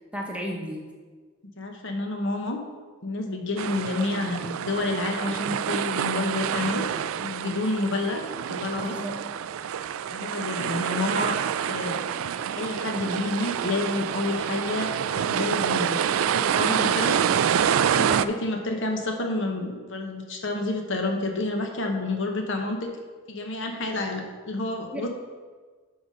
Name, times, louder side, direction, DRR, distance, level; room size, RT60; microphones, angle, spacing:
voice 1, 0.1-0.9 8.8-9.2 24.9-25.1, equal, 5° right, -1 dB, 1.0 m, -33 dB
voice 2, 1.6-2.6 3.0-6.8 7.2-8.2 8.5-8.9 10.1-11.4 11.7-12.0 12.5-17.2 17.8-22.9 23.3-25.1, left 2 dB, 60° left, 3 dB, 1.0 m, -29 dB
sound 1, 3.6-18.2, right 8 dB, 70° right, 0.3 m, -27 dB
11.5 x 4.0 x 5.3 m, 1.5 s
head